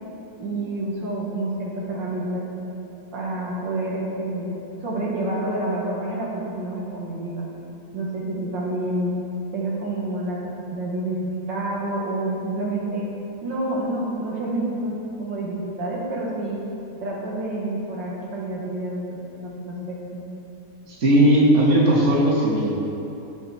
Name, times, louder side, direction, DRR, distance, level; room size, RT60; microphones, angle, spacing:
voice 1, 0.4-2.5 3.1-7.6 7.9-9.1 9.5-10.4 10.7-11.2 11.5-13.1 13.4-16.6 17.0-20.2, right 1 dB, 80° right, -4 dB, 2.2 m, -28 dB
voice 2, 20.9-22.7, right 1 dB, 40° right, -5 dB, 2.1 m, -17 dB
16.0 x 5.9 x 4.3 m, 2.9 s
omnidirectional pair, 2.0 m